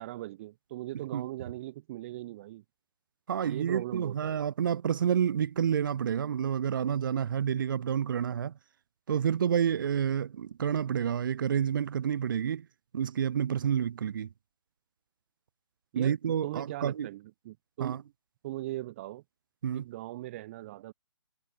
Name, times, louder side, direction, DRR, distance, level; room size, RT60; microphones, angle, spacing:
voice 1, 0.0-2.6 3.4-4.5 15.9-16.2 16.4-18.0 18.4-19.2 19.7-20.9, right 16 dB, 25° right, 5.0 m, -39 dB
voice 2, 3.3-8.5 9.1-12.6 12.9-14.3 16.0-17.1 17.8-18.0 19.6-19.8, right 8 dB, 45° right, 6.4 m, -29 dB
hypercardioid pair, 165°, 15 cm